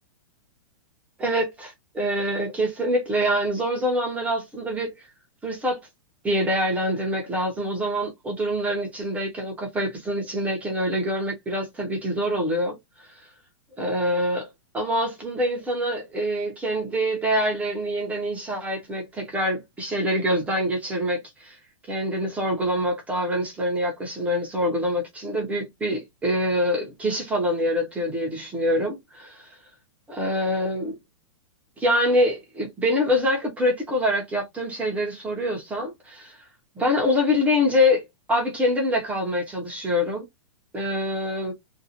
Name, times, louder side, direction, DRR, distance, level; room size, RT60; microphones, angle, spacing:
voice 1, 1.2-5.0 5.4-5.8 6.2-12.8 13.8-14.5 14.7-21.6 21.9-29.5 30.1-31.0 31.8-36.4 36.8-40.2 40.7-41.5, equal, 10° right, 0.7 m, -25 dB
2.5 x 2.3 x 2.7 m
hypercardioid pair, 160°, 18 cm